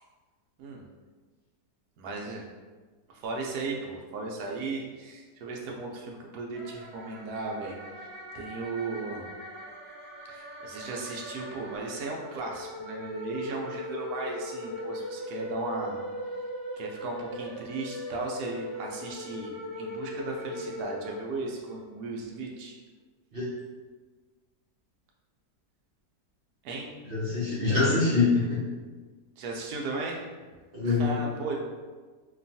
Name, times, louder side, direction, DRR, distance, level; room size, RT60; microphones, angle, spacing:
voice 1, 2.0-2.4 3.1-8.1 8.3-9.3 10.3-16.0 16.8-22.8 26.6-26.9 29.4-30.2 30.8-31.6, right 3 dB, 75° right, -1 dB, 1.1 m, -36 dB
sound 1, 6.5-21.8, left 1 dB, 55° left, 0.9 m, -39 dB
voice 2, 27.1-28.6 30.7-31.1, left 3 dB, 60° right, -8 dB, 0.5 m, -24 dB
3.0 x 2.2 x 2.6 m, 1.4 s
omnidirectional pair, 1.7 m